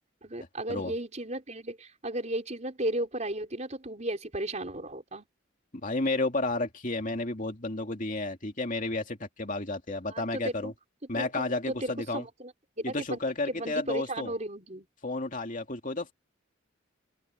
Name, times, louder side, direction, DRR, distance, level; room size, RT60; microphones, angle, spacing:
voice 1, 0.2-5.3 10.1-10.7 11.1-12.5 12.8-13.2 13.5-14.9, right 1 dB, 35° right, 4.5 m, -35 dB
voice 2, 5.7-10.7 11.1-12.2 12.8-14.3 15.0-16.1, left 2 dB, 40° left, 2.5 m, -32 dB
open air
head